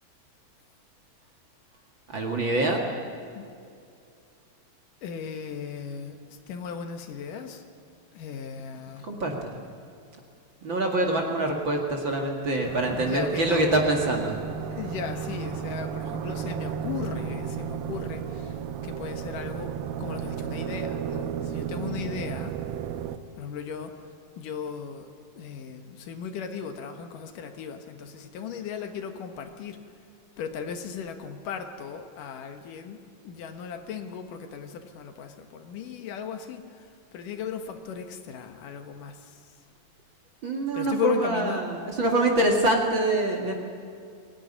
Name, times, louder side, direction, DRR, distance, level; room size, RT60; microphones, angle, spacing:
voice 1, 2.1-2.8 9.1-9.5 10.6-14.3 40.4-43.5, right 2 dB, 40° right, 1 dB, 2.4 m, -25 dB
voice 2, 5.0-7.6 8.1-9.1 12.9-13.7 14.7-18.6 18.8-19.7 20.0-22.5 23.4-23.9 24.4-29.8 30.4-39.4 40.7-41.6, left 6 dB, 70° left, 6 dB, 2.8 m, -36 dB
sound 1, 12.6-23.2, right 8 dB, 90° right, 2.7 m, -33 dB
23.0 x 17.5 x 10.0 m, 2.4 s
omnidirectional pair, 4.0 m